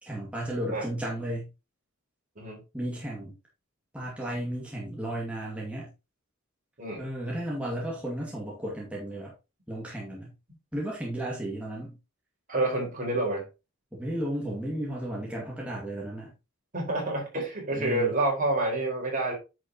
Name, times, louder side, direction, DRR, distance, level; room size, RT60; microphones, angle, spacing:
voice 1, 0.0-1.5 2.7-3.4 3.9-5.9 7.0-9.3 9.7-10.3 10.7-12.0 13.9-16.3 17.7-18.2, right 1 dB, 5° right, 2.2 m, -34 dB
voice 2, 12.5-13.5 16.7-19.3, right 2 dB, 40° right, 4.6 m, -28 dB
9.7 x 6.6 x 3.0 m
head